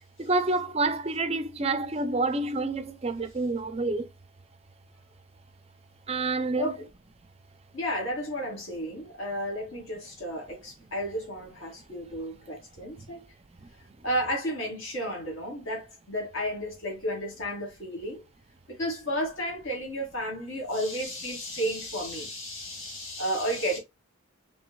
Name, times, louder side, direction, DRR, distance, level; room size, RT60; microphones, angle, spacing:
voice 1, 0.2-4.1 6.1-6.7 13.6-13.7, right 3 dB, 25° right, 0.5 m, -28 dB
voice 2, 7.7-13.3 14.0-18.2 18.7-23.8, equal, 60° left, 2.3 m, -32 dB
5.0 x 3.3 x 2.3 m
head